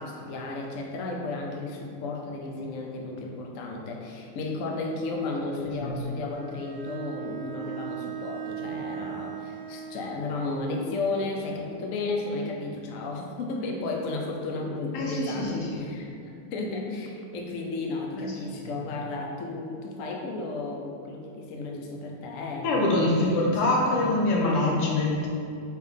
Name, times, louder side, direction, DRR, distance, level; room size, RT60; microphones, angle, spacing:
voice 1, 0.0-16.2 16.5-24.2, left 3 dB, 65° left, 0 dB, 0.8 m, -33 dB
Bowed string instrument, 6.3-10.3, right 9 dB, 75° right, 1.3 m, -38 dB
voice 2, 14.9-15.9 18.2-18.7 22.6-25.3, left 2 dB, 90° left, -2 dB, 2.0 m, -25 dB
4.7 x 4.6 x 5.2 m, 2.6 s
omnidirectional pair, 2.4 m